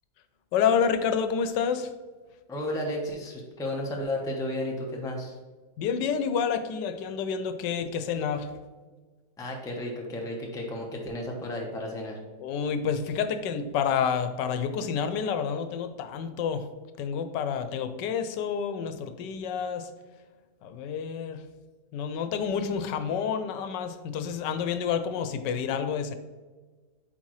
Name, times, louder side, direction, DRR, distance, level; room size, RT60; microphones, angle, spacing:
voice 1, 0.5-1.9 5.8-8.5 12.4-16.7 17.0-19.9 20.6-21.4 21.9-26.2, left 7 dB, 90° left, 10 dB, 1.3 m, -29 dB
voice 2, 2.5-5.3 9.4-12.2, left 1 dB, 5° left, 0 dB, 0.5 m, -33 dB
8.3 x 4.2 x 3.1 m, 1.3 s
omnidirectional pair, 1.8 m